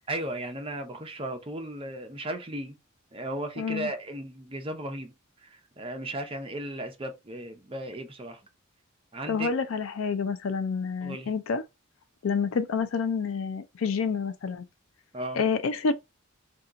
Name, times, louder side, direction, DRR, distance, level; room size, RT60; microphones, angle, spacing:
voice 1, 0.1-2.8 3.1-5.1 5.4-8.4 9.1-9.5 11.0-11.3 15.1-15.4, right 1 dB, 25° right, 0.6 m, -35 dB
voice 2, 3.6-3.9 9.3-11.6 12.2-14.6 15.3-15.9, left 5 dB, 70° left, 0.4 m, -28 dB
2.8 x 2.3 x 3.7 m
head